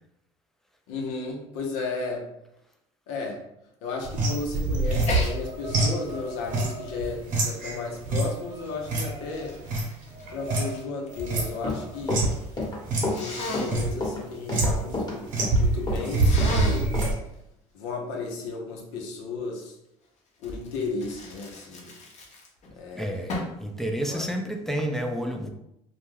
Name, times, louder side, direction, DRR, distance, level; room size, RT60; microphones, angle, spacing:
voice 1, 0.9-2.3 3.1-3.4 3.8-9.5 10.3-12.3 13.1-16.9 17.7-19.7 20.4-21.9 22.8-23.3 24.0-24.3, left 3 dB, 80° left, 1 dB, 0.7 m, -34 dB
sound 1, 4.0-10.8 11.1-12.4 12.8-13.1 13.4-13.9 14.5-15.0 15.3-17.1, right 2 dB, 60° right, 0.9 m, -26 dB
Sneeze, 5.1-5.3 5.8-8.2 8.9-11.3 11.6-12.2 13.1-13.7 16.2-16.9 20.4-22.7 23.3-23.6, left 2 dB, 50° left, 0.8 m, -35 dB
Run, 11.5-16.6 16.9-17.1, left 2 dB, 25° left, 1.0 m, -30 dB
voice 2, 23.0-23.3 23.6-25.5, right 1 dB, ahead, 3 dB, 0.5 m, -29 dB
2.3 x 2.2 x 3.2 m, 0.80 s
supercardioid pair, 75°, 15 cm